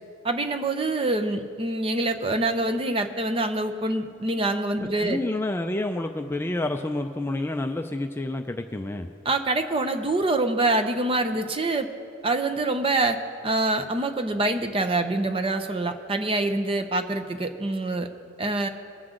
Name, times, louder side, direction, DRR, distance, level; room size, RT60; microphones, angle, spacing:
voice 1, 0.2-5.2 9.2-11.9 12.2-13.2 13.4-18.1 18.4-18.7, right 2 dB, 25° right, 7 dB, 0.7 m, -25 dB
voice 2, 4.8-9.1, left 2 dB, 10° left, 4 dB, 0.4 m, -29 dB
20.5 x 7.7 x 3.8 m, 2.4 s
head